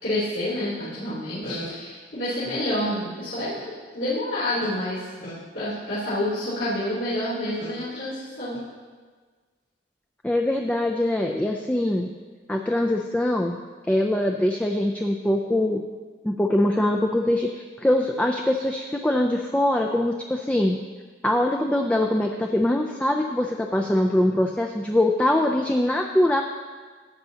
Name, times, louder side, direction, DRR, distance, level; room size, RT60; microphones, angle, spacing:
voice 1, 0.0-8.6, left 1 dB, 70° left, -13 dB, 3.2 m, -28 dB
voice 2, 10.2-12.1 12.5-13.6 13.9-15.8 16.2-20.8 21.2-26.4, left 1 dB, 5° left, 1 dB, 0.3 m, -23 dB
13.5 x 8.1 x 2.8 m, 1.5 s
head